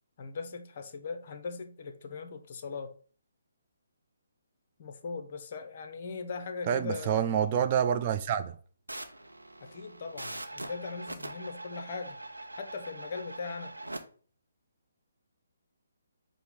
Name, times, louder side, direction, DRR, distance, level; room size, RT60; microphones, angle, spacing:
voice 1, 0.2-2.9 4.8-7.3 9.6-12.2 12.6-13.8, left 4 dB, 40° left, 0.5 m, -39 dB
voice 2, 6.7-8.5, right 8 dB, 30° right, 0.3 m, -27 dB
sound 1, 8.9-14.0, right 2 dB, 80° right, 0.5 m, -42 dB
5.3 x 2.0 x 4.6 m
figure-of-eight pair, 140°, 0 cm